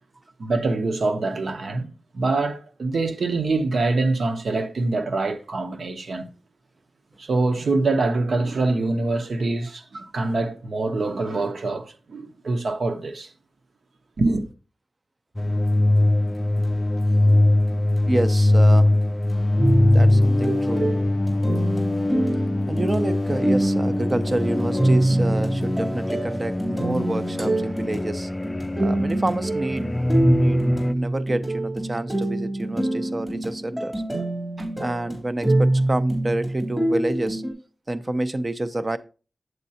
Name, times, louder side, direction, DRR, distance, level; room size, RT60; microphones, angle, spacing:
voice 1, 0.4-6.3 7.2-13.3 14.2-14.4, right 3 dB, 90° right, 0.9 m, -24 dB
sound 1, 15.4-30.9, left 1 dB, 20° left, 0.4 m, -22 dB
voice 2, 18.1-18.9 19.9-20.9 22.7-28.3 28.8-29.9 30.3-33.9 34.6-37.4 37.9-39.0, right 2 dB, 35° right, 0.6 m, -28 dB
sound 2, 19.6-37.5, right 1 dB, 15° right, 3.4 m, -25 dB
8.0 x 7.4 x 2.8 m
wide cardioid pair, 85°, 0 cm